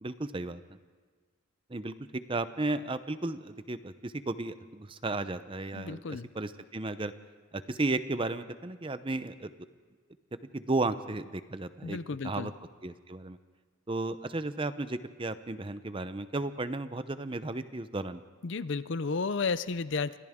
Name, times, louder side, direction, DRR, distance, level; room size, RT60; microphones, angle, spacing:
voice 1, 0.0-0.6 1.7-7.1 7.5-9.5 10.5-12.0 12.2-12.5 12.8-13.4 13.9-18.2, right 2 dB, 25° right, 12 dB, 0.7 m, -34 dB
voice 2, 5.7-6.3 11.8-12.5 18.4-20.2, left 4 dB, 60° left, 15 dB, 0.6 m, -32 dB
29.5 x 25.0 x 3.7 m, 1.5 s
head